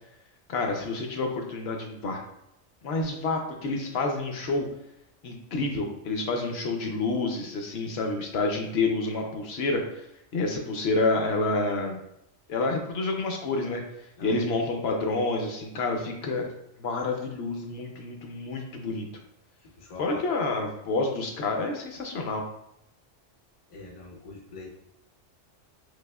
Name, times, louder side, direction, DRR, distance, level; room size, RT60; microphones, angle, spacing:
voice 1, 0.5-2.2 2.8-4.7 5.2-10.1 10.3-12.0 12.5-13.8 14.2-16.4 16.8-19.1 20.0-22.4, left 3 dB, 65° left, 3 dB, 0.8 m, -28 dB
voice 2, 19.6-20.5 23.7-24.7, left 3 dB, 50° left, -1 dB, 0.4 m, -45 dB
4.1 x 2.6 x 2.2 m, 0.81 s
omnidirectional pair, 1.2 m